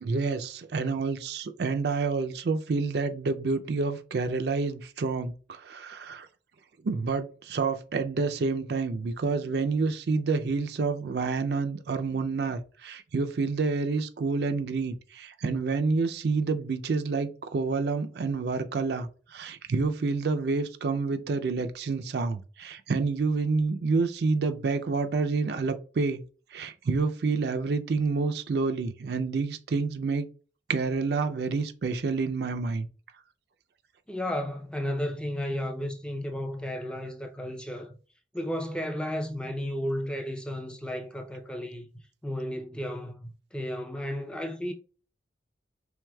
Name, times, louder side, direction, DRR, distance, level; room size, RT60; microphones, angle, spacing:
voice 1, 0.0-6.3 6.8-26.2 26.5-30.3 30.7-32.9, right 4 dB, 60° right, 0.4 m, -28 dB
voice 2, 34.1-38.0 38.3-41.9 42.2-44.7, equal, 5° left, 0.4 m, -33 dB
4.7 x 3.4 x 2.2 m
head